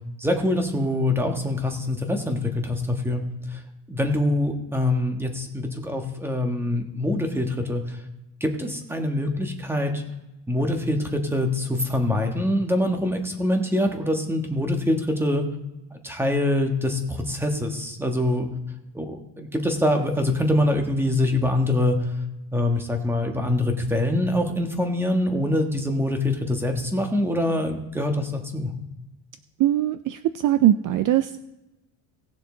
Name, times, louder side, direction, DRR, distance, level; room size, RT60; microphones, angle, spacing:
voice 1, 0.2-3.2 3.5-3.6 3.9-8.0 8.4-10.0 10.5-15.4 16.0-18.5 18.9-22.1 22.5-28.7, left 1 dB, 5° right, 4 dB, 1.4 m, -24 dB
voice 2, 29.6-31.4, right 13 dB, 50° right, 12 dB, 0.5 m, -21 dB
18.5 x 6.6 x 3.9 m, 0.99 s
cardioid pair, 130°, 43 cm